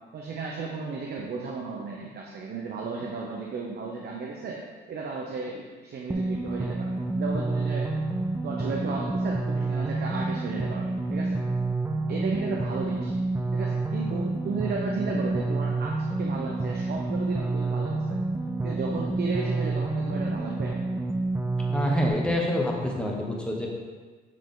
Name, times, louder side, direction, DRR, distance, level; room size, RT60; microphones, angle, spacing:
voice 1, 0.1-4.6 4.9-7.9 8.4-11.4 12.1-13.1 13.5-18.2 18.6-20.8, right 4 dB, 55° right, -1 dB, 0.7 m, -34 dB
sound 1, 6.1-22.1, right 2 dB, 10° right, 0.5 m, -28 dB
voice 2, 21.7-23.7, left 1 dB, 5° left, -2 dB, 1.1 m, -27 dB
7.6 x 3.3 x 3.8 m, 1.4 s
cardioid pair, 90°, 20 cm